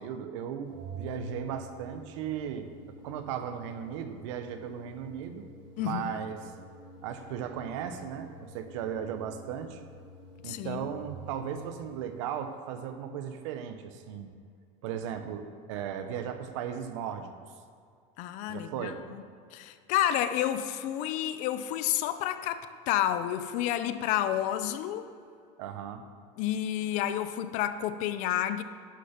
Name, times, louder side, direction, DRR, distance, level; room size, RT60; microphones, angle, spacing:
voice 1, 0.0-2.7 3.0-5.4 5.8-6.4 7.0-9.8 10.4-14.3 14.8-17.3 18.5-19.0 25.6-26.0, right 8 dB, 90° right, 8 dB, 1.0 m, -36 dB
Organ, 0.7-11.7, right 1 dB, 55° right, 2.2 m, -48 dB
voice 2, 5.8-6.2 10.4-10.9 18.2-19.2 19.5-25.1 26.4-28.6, left 11 dB, 55° left, 11 dB, 0.6 m, -30 dB
11.5 x 6.5 x 6.0 m, 2.3 s
cardioid pair, 160°, 15 cm